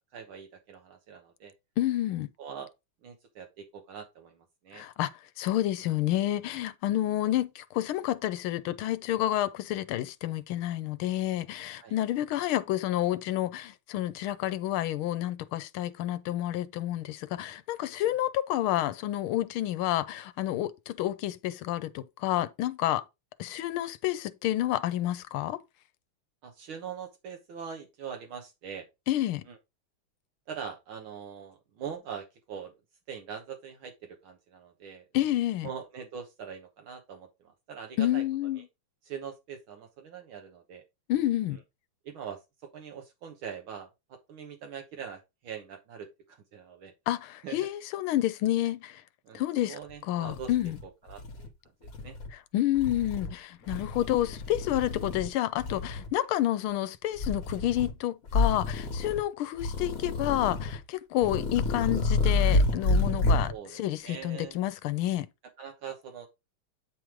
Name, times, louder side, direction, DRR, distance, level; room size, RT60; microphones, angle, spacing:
voice 1, 0.1-1.5 2.4-2.7 3.0-4.8 5.8-5.9 11.8-11.9 18.1-18.2 26.4-28.9 29.5-29.6 30.5-32.7 33.1-35.1 35.6-38.2 38.6-38.7 39.0-40.8 42.1-42.4 42.7-46.9 47.4-47.6 49.3-49.4 49.7-50.5 51.0-51.5 51.8-52.2 63.5-64.6 65.6-66.3, right 7 dB, 75° right, 1.8 m, -42 dB
voice 2, 1.8-2.3 4.7-5.1 5.4-23.0 23.4-25.6 29.1-29.4 35.1-35.7 38.0-38.6 41.1-41.6 47.1-49.0 49.3-49.8 50.1-50.8 52.5-65.3, left 13 dB, 90° left, 1.5 m, -29 dB
sound 1, 49.9-50.0 50.3-51.5 51.8-52.3 52.8-53.3 53.7-55.3 55.6-56.1 57.2-57.9 58.3-59.2 59.6-60.8 61.2-63.5, left 3 dB, 45° left, 1.5 m, -29 dB
9.1 x 3.1 x 4.9 m
omnidirectional pair, 2.3 m